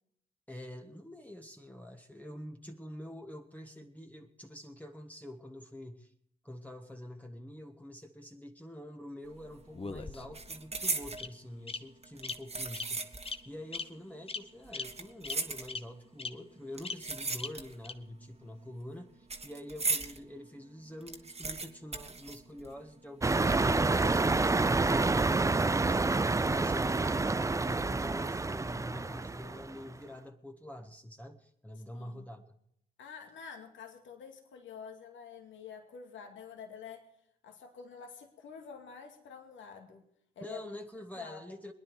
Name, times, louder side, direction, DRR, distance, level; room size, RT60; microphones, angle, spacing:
voice 1, 0.5-6.1 6.4-13.0 13.4-25.4 25.8-27.3 27.5-32.6 40.4-41.7, left 1 dB, 5° left, 3 dB, 1.5 m, -46 dB
sound 1, 9.3-9.6 9.9-11.3 12.0-13.4 13.7-13.8 14.6-16.1 16.7-17.9 18.2-20.2 20.6-20.7 20.9-23.0 23.2-23.3 24.0-24.5 24.9-25.1, right 3 dB, 30° right, 1.7 m, -37 dB
Bird vocalization bird call bird song, 9.7-10.5 11.2-11.3 11.7-11.8 12.2-12.3 12.7-12.9 13.2-13.4 13.7-13.8 14.3-14.4 14.7-14.8 15.2-15.3 15.7-15.8 16.2-16.3 16.8-16.9 17.4-17.5 17.8-17.9, left 4 dB, 25° left, 1.0 m, -37 dB
sound 2, 23.2-29.8, right 3 dB, 15° right, 0.5 m, -28 dB
voice 2, 31.9-32.3 33.0-37.1 37.4-40.0 40.4-40.6 41.2-41.4, left 6 dB, 70° left, 4 dB, 2.3 m, -48 dB
22.5 x 9.9 x 4.7 m, 0.72 s
hypercardioid pair, 50°, 21 cm